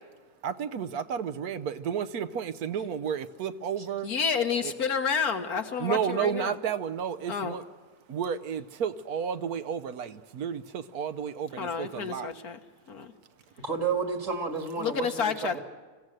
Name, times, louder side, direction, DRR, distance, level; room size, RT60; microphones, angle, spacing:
voice 1, 0.4-4.1 4.6-4.7 5.8-7.6 8.1-12.3, right 8 dB, 75° right, 10 dB, 1.3 m, -32 dB
voice 2, 4.0-6.6 7.3-7.6 11.6-12.6 12.9-13.1 14.8-15.6, left 6 dB, 75° left, 6 dB, 1.9 m, -30 dB
voice 3, 13.6-15.6, right 5 dB, 55° right, 5 dB, 2.2 m, -31 dB
26.0 x 16.0 x 7.6 m, 1.5 s
omnidirectional pair, 1.6 m